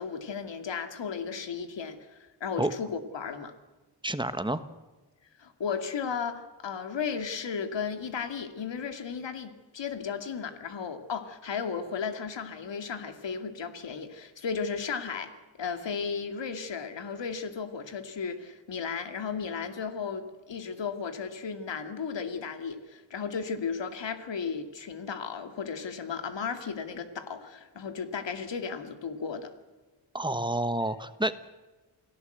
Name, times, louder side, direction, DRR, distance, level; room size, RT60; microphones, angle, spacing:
voice 1, 0.0-3.5 5.4-29.5, left 6 dB, 80° left, 8 dB, 2.5 m, -35 dB
voice 2, 4.0-4.6 30.1-31.4, right 1 dB, 10° right, 11 dB, 1.3 m, -29 dB
28.5 x 18.5 x 8.0 m, 1.2 s
wide cardioid pair, 120°, 43 cm